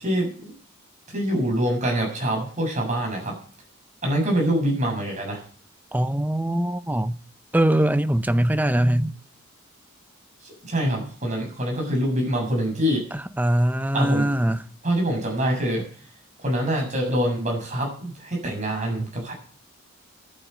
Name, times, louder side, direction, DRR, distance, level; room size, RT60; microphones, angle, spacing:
voice 1, 0.0-0.5 1.1-3.4 4.0-5.4 10.4-13.0 13.9-14.5 14.8-15.9 16.4-19.3, equal, 35° right, 7.0 m, -25 dB
voice 2, 5.9-7.2 7.5-9.1 13.4-14.6, right 1 dB, 10° right, 0.6 m, -22 dB
11.0 x 10.0 x 8.1 m
head